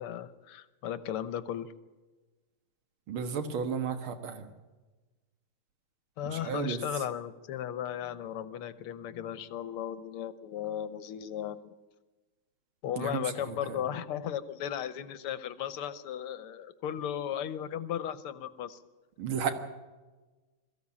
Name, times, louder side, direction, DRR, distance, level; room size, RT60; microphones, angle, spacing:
voice 1, 0.0-1.7 6.2-11.8 12.8-18.8, left 10 dB, 90° left, 13 dB, 1.9 m, -36 dB
voice 2, 3.1-4.4 6.4-6.8 13.0-13.2 19.2-19.5, right 7 dB, 70° right, 8 dB, 2.4 m, -32 dB
22.0 x 15.0 x 8.6 m, 1.2 s
omnidirectional pair, 2.4 m